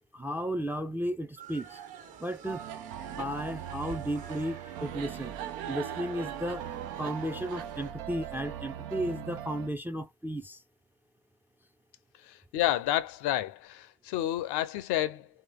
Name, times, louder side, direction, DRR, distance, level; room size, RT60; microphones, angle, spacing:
voice 1, 0.1-1.8 2.2-2.7 3.1-5.3 5.7-6.7 7.0-10.6, equal, 5° right, 0.5 m, -34 dB
sound 1, 1.4-7.9, right 7 dB, 55° right, 1.4 m, -47 dB
sound 2, 2.5-9.7, right 10 dB, 70° right, 0.7 m, -40 dB
voice 2, 12.2-15.3, left 13 dB, 60° left, 0.7 m, -30 dB
3.2 x 2.9 x 3.5 m
figure-of-eight pair, 45°, 45 cm